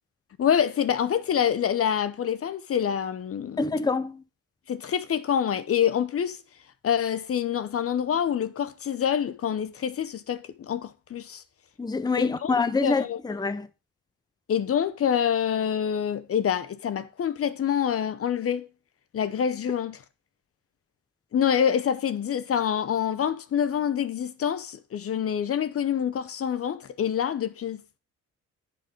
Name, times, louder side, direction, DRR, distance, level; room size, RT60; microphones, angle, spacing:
voice 1, 0.4-3.8 4.7-6.4 6.8-11.4 12.2-13.2 14.5-18.7 19.1-20.0 21.3-27.8, left 8 dB, 50° left, 0.8 m, -26 dB
voice 2, 3.6-4.2 11.8-13.7, left 4 dB, 15° left, 0.7 m, -26 dB
10.5 x 5.8 x 5.2 m
cardioid pair, 90°, 30 cm